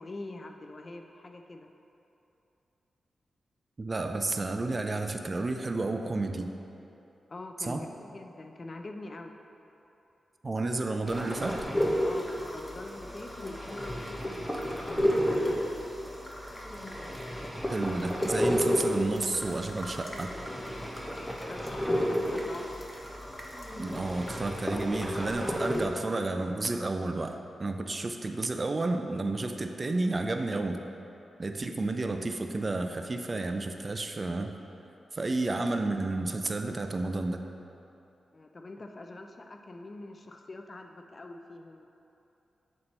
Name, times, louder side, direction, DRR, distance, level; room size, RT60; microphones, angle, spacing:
voice 1, 0.0-1.7 7.3-9.4 12.0-15.8 21.1-22.8 38.3-41.9, left 2 dB, 40° left, 4 dB, 0.5 m, -44 dB
voice 2, 3.8-6.5 7.6-7.8 10.4-11.6 17.7-20.3 23.8-30.8 31.4-34.5 35.1-37.4, right 2 dB, 35° right, 5 dB, 0.4 m, -31 dB
sound 1, 11.1-25.9, equal, 10° left, 0.9 m, -32 dB
7.9 x 4.3 x 4.3 m, 2.9 s
cardioid pair, 80°, 0 cm